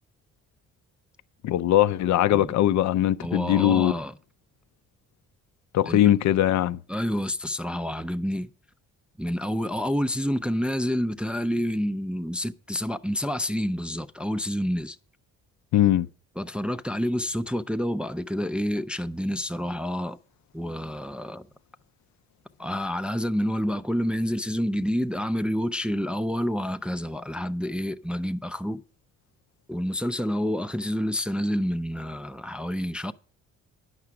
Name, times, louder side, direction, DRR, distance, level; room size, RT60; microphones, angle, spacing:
voice 1, 1.4-3.9 5.7-6.8 15.7-16.1, left 13 dB, 65° left, 0.5 m, -21 dB
voice 2, 3.2-4.1 5.9-6.1 6.9-8.5 9.2-15.0 16.4-20.2 20.5-21.5 22.6-28.8 29.7-33.1, equal, 5° right, 0.3 m, -28 dB
9.7 x 5.9 x 5.9 m
cardioid pair, 90°, 30 cm